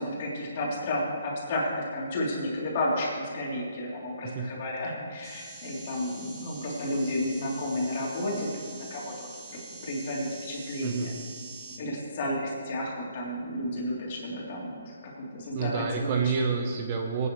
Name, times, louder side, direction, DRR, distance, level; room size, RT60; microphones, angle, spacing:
voice 1, 0.0-8.5 8.9-11.1 11.8-16.2, left 1 dB, 40° left, -5 dB, 3.3 m, -32 dB
sound 1, 5.2-11.8, right 3 dB, 15° right, 1.6 m, -45 dB
voice 2, 10.8-11.2 15.5-17.3, right 5 dB, 30° right, 4 dB, 0.9 m, -29 dB
20.0 x 9.5 x 3.2 m, 2.1 s
hypercardioid pair, 160°, 0 cm